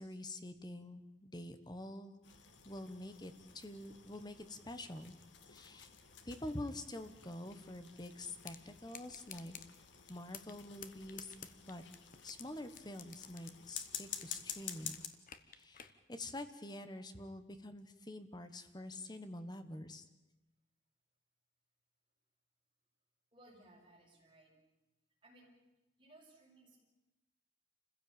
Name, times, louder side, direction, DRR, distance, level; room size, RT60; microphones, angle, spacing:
voice 1, 0.0-2.2 2.6-5.1 5.4-5.9 6.2-9.6 10.1-11.4 11.6-11.8 12.2-15.0 15.5-20.0, left 1 dB, 20° left, 9 dB, 1.3 m, -47 dB
sound 1, 2.2-15.1, left 8 dB, 75° left, 1.8 m, -51 dB
sound 2, 8.4-8.6 8.9-9.7 10.1-10.6 10.8-12.4 12.8-14.4 14.7-15.9, left 9 dB, 45° left, 1.2 m, -50 dB
voice 2, 23.3-24.6 25.2-25.5 26.0-26.8, right 1 dB, 25° right, -2 dB, 6.5 m, -62 dB
28.0 x 15.5 x 8.9 m, 1.0 s
head